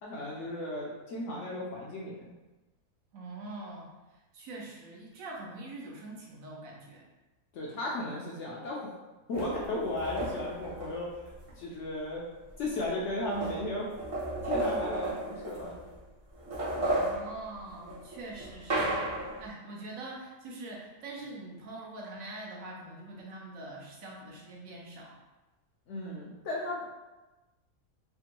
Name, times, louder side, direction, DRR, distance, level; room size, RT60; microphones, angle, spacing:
voice 1, 0.0-2.3 7.5-8.9 9.3-11.2 11.6-12.2 12.6-13.9 14.4-15.7 25.9-26.8, left 1 dB, 65° left, -4 dB, 0.8 m, -35 dB
voice 2, 3.1-7.0 16.9-25.2, right 2 dB, 70° right, -2 dB, 1.0 m, -44 dB
sound 1, 9.3-11.5 12.5-12.6 12.8-16.0 16.3-19.5, right 1 dB, 35° right, 0.5 m, -34 dB
3.4 x 2.1 x 2.9 m, 1.1 s
omnidirectional pair, 1.6 m